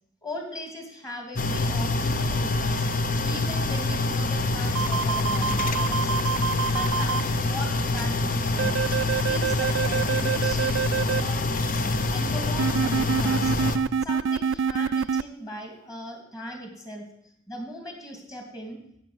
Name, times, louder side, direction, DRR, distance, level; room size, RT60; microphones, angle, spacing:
voice 1, 0.2-2.9 3.2-8.8 9.2-11.4 12.1-13.5 14.0-17.1 17.5-18.8, left 1 dB, 20° left, 3 dB, 2.9 m, -39 dB
sound 1, 1.4-13.8, left 2 dB, 45° left, 0.9 m, -26 dB
sound 2, 4.7-7.2 8.6-11.2 12.6-15.2, right 6 dB, 90° right, 0.4 m, -26 dB
11.0 x 8.1 x 9.4 m, 0.75 s
head